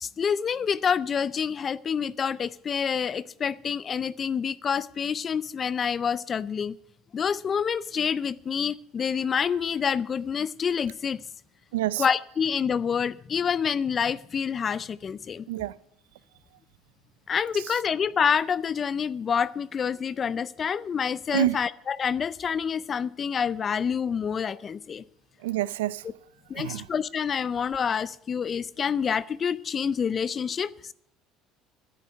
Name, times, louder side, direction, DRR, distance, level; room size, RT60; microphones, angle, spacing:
voice 1, 0.0-6.8 7.1-11.2 12.0-15.5 17.3-25.0 26.5-30.9, left 7 dB, 40° left, 0.4 m, -27 dB
voice 2, 11.7-12.1 15.5-15.8 17.5-17.8 21.3-21.6 25.4-26.1 26.5-26.9, right 13 dB, 90° right, 0.4 m, -28 dB
10.5 x 9.4 x 8.0 m
supercardioid pair, 80°, 0 cm